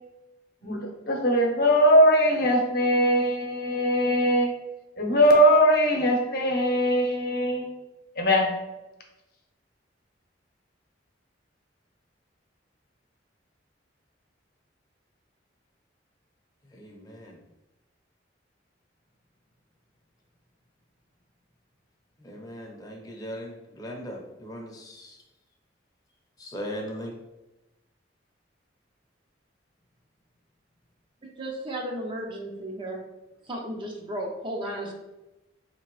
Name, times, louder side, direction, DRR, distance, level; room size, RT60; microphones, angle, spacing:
voice 1, 0.6-4.5 5.0-7.6 8.2-8.5, equal, 55° left, 0 dB, 0.8 m, -21 dB
voice 2, 16.6-17.4 22.2-25.2 26.4-27.2, equal, 20° left, 0 dB, 0.7 m, -39 dB
voice 3, 31.4-33.0 33.5-34.9, right 1 dB, 25° right, 0 dB, 0.5 m, -34 dB
4.4 x 2.9 x 3.0 m, 0.99 s
head